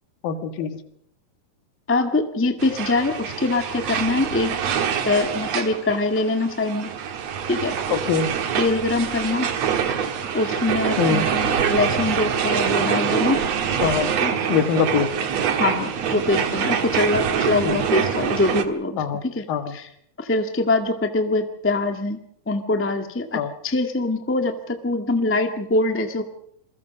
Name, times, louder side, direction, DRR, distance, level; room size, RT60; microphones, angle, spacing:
voice 1, 0.2-0.8 7.9-8.3 11.0-11.3 13.8-14.1 14.5-15.1 17.6-17.8 19.0-19.2 19.5-19.7 23.3-23.5, left 7 dB, 80° left, 9 dB, 3.3 m, -23 dB
voice 2, 1.9-4.5 5.0-7.0 7.5-7.7 8.6-9.5 10.3-13.4 14.2-14.3 15.5-19.4 19.7-19.9 20.2-22.2 22.5-26.2, left 2 dB, 15° left, 6 dB, 0.4 m, -23 dB
sound 1, 2.6-18.7, right 8 dB, 55° right, 2.3 m, -25 dB
28.0 x 22.0 x 5.4 m, 0.71 s
omnidirectional pair, 4.1 m